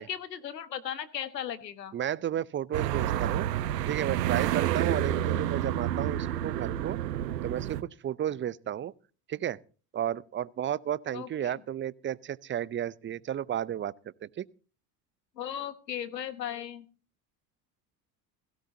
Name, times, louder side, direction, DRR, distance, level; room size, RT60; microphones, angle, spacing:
voice 1, 0.0-1.9 11.1-11.5 15.4-16.8, left 9 dB, 90° left, 1.2 m, -37 dB
voice 2, 1.9-3.5 3.9-7.0 7.4-8.9 9.3-9.6 9.9-13.9 14.2-14.4, right 10 dB, 25° right, 0.5 m, -33 dB
sound 1, 2.7-7.8, right 12 dB, 80° right, 1.0 m, -29 dB
16.5 x 16.5 x 2.7 m
hypercardioid pair, 70°, 48 cm